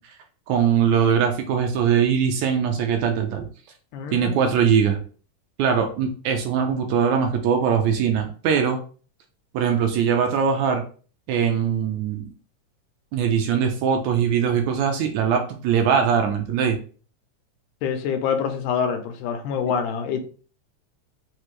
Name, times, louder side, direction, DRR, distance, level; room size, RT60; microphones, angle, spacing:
voice 1, 0.5-3.5 4.1-5.0 5.6-8.8 9.5-10.8 11.3-12.3 13.1-16.8, right 7 dB, 75° right, 4 dB, 1.8 m, -21 dB
voice 2, 3.9-4.7 17.8-20.2, left 7 dB, 85° left, 5 dB, 2.2 m, -26 dB
6.1 x 2.4 x 3.1 m, 0.39 s
omnidirectional pair, 3.5 m